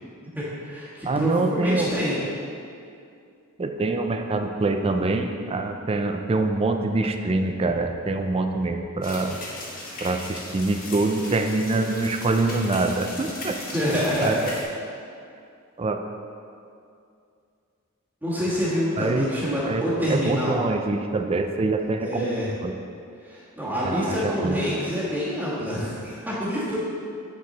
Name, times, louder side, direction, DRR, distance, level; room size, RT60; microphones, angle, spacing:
voice 1, 0.3-2.2 13.7-14.5 18.2-20.6 22.0-22.5 23.2-26.8, equal, 10° right, -12 dB, 1.5 m, -26 dB
voice 2, 1.0-1.9 3.6-9.4 10.0-13.6 14.2-14.4 15.8-16.0 19.0-19.3 19.6-22.3 22.6-22.7 23.8-24.6, right 2 dB, 25° right, 6 dB, 0.4 m, -25 dB
sound 1, 9.0-14.6, left 2 dB, 40° left, 1.2 m, -37 dB
9.2 x 4.7 x 4.0 m, 2.4 s
head